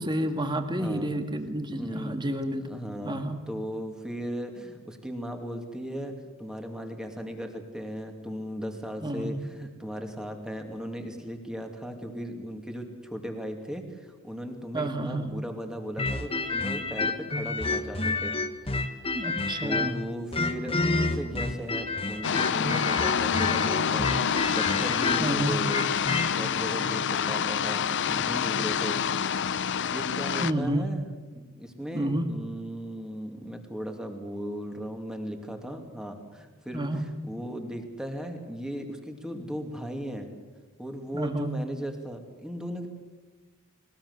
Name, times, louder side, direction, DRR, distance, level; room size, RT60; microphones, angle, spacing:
voice 1, 0.0-2.7 3.0-3.4 9.0-9.4 14.7-15.3 19.1-20.0 25.2-25.6 30.4-30.9 31.9-32.3 36.7-37.1 41.1-41.5, right 1 dB, 20° right, 6 dB, 1.9 m, -30 dB
voice 2, 0.8-1.1 1.7-2.2 2.5-18.4 18.8-19.0 19.6-25.9 26.4-29.0 29.9-31.1 31.3-40.3 40.8-42.9, equal, 5° right, 4 dB, 2.6 m, -37 dB
sound 1, 16.0-20.0 20.3-26.3, left 3 dB, 25° left, 1.4 m, -29 dB
sound 2, 22.2-30.5, left 7 dB, 55° left, 0.6 m, -27 dB
21.0 x 19.5 x 8.2 m, 1.3 s
head